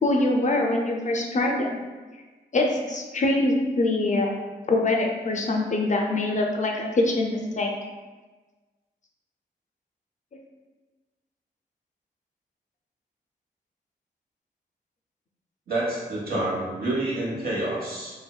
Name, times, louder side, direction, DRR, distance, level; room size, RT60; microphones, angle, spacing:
voice 1, 0.0-1.7 2.5-4.3 4.7-7.7, left 2 dB, 40° left, 0 dB, 0.4 m, -24 dB
voice 2, 15.7-18.1, right 1 dB, 55° right, -7 dB, 1.1 m, -28 dB
2.6 x 2.0 x 2.3 m, 1.3 s
supercardioid pair, 45°, 19 cm